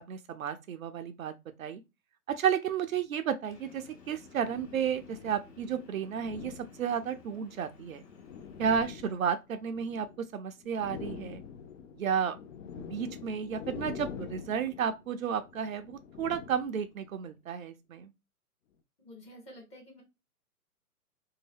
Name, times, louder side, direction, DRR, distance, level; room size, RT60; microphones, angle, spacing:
voice 1, 0.0-1.8 2.3-8.0 8.6-10.1 10.3-11.4 11.9-12.4 12.8-18.1, right 7 dB, 65° right, 0.5 m, -32 dB
sound 1, 2.8-3.0 4.0-5.5 6.1-7.2 7.9-10.3 10.6-17.1, left 7 dB, 55° left, 0.5 m, -46 dB
Train, 3.5-8.7, left 4 dB, 85° left, 0.8 m, -54 dB
voice 2, 19.0-20.0, equal, 15° left, 0.8 m, -50 dB
2.7 x 2.1 x 3.3 m
figure-of-eight pair, 125°, 45 cm